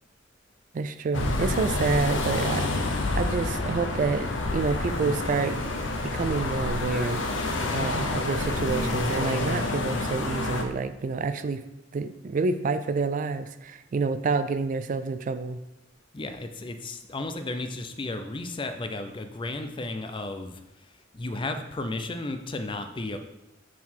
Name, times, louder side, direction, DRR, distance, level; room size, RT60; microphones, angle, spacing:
voice 1, 0.7-5.8 6.0-7.2 7.7-11.6 11.9-15.6, right 4 dB, 45° right, 11 dB, 0.3 m, -28 dB
sound 1, 1.1-10.6, left 2 dB, 75° left, 0.7 m, -28 dB
voice 2, 16.1-20.6 21.1-23.2, left 2 dB, 25° left, 8 dB, 0.5 m, -33 dB
7.3 x 4.0 x 4.4 m, 0.92 s
head